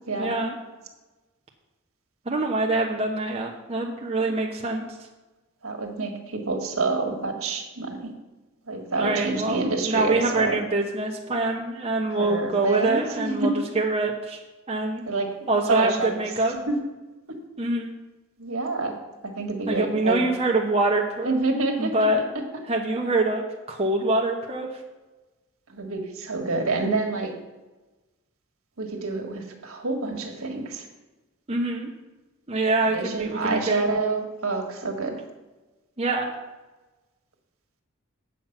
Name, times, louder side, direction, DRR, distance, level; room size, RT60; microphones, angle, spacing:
voice 1, 0.2-0.5 2.3-4.8 9.0-14.4 14.7-15.0 15.5-16.6 17.6-17.9 19.7-21.3 21.8-22.2 22.7-24.7 31.5-31.9 32.5-33.9 36.0-36.3, right 2 dB, 30° right, 0 dB, 0.9 m, -25 dB
voice 2, 5.6-8.1 8.7-10.6 12.2-13.5 15.1-15.3 15.7-16.2 16.7-16.8 18.4-18.9 19.2-20.2 21.2-21.9 25.7-27.3 28.8-30.9 32.9-35.2, right 3 dB, 70° right, 2 dB, 1.7 m, -27 dB
8.3 x 7.3 x 6.0 m, 1.1 s
head